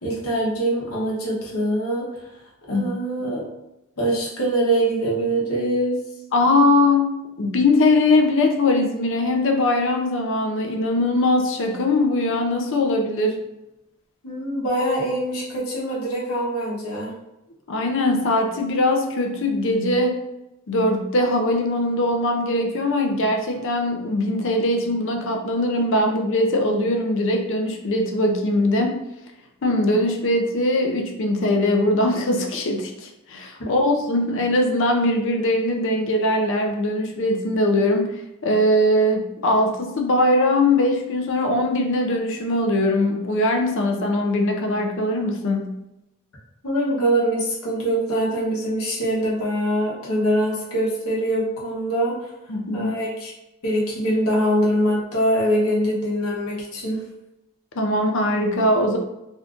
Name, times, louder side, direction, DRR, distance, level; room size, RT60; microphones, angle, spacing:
voice 1, 0.0-2.1 2.7-3.4 4.0-6.0 14.2-17.1 46.6-52.3 52.7-53.3 53.6-57.0, right 1 dB, 70° left, -4 dB, 0.9 m, -23 dB
voice 2, 6.3-7.1 7.4-13.4 17.7-20.2 20.7-28.9 29.6-45.7 52.5-52.9 57.7-59.0, left 1 dB, 55° left, 3 dB, 0.5 m, -21 dB
2.6 x 2.4 x 3.5 m, 0.90 s
head